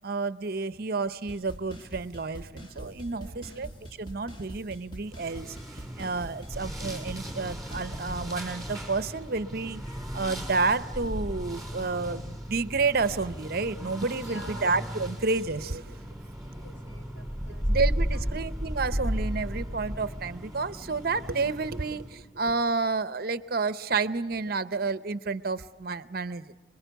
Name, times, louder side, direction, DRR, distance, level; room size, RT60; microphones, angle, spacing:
voice 1, 0.0-3.7 4.0-16.0 17.7-26.5, right 4 dB, 50° right, 14 dB, 0.7 m, -30 dB
sound 1, 1.3-8.1, right 1 dB, 25° left, 1.4 m, -44 dB
voice 2, 3.1-3.6 14.1-14.7 16.3-17.7 18.1-18.5, equal, 75° left, 4 dB, 4.9 m, -49 dB
sound 2, 5.1-22.2, equal, ahead, 5.4 m, -35 dB
26.5 x 22.0 x 8.1 m, 1.3 s
head